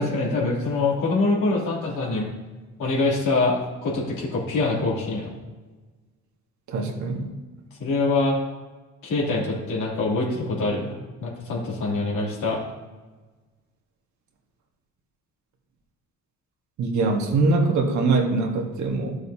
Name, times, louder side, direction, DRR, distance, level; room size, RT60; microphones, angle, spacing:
voice 1, 0.0-2.3 2.8-5.3 7.8-8.4 9.0-10.9 11.2-12.6, left 3 dB, 90° left, -4 dB, 3.0 m, -24 dB
voice 2, 6.7-7.3 16.8-19.2, right 3 dB, 70° right, 2 dB, 1.6 m, -23 dB
13.0 x 6.6 x 2.8 m, 1.3 s
cardioid pair, 90°, 30 cm